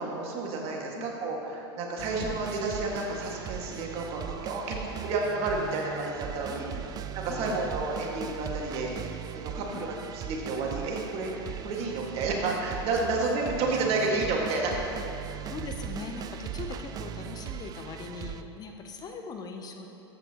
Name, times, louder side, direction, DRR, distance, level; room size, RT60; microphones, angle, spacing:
voice 1, 0.0-4.8 5.0-6.7 7.1-11.3 11.6-14.7, right 3 dB, 45° right, -1 dB, 1.8 m, -31 dB
sound 1, 2.0-18.4, right 9 dB, 30° right, 0.4 m, -39 dB
voice 2, 6.5-6.8 7.3-7.6 9.7-9.8 13.1-13.2 15.5-20.0, left 5 dB, 30° left, 4 dB, 0.7 m, -41 dB
13.5 x 8.2 x 2.9 m, 3.0 s
hypercardioid pair, 100°, 14 cm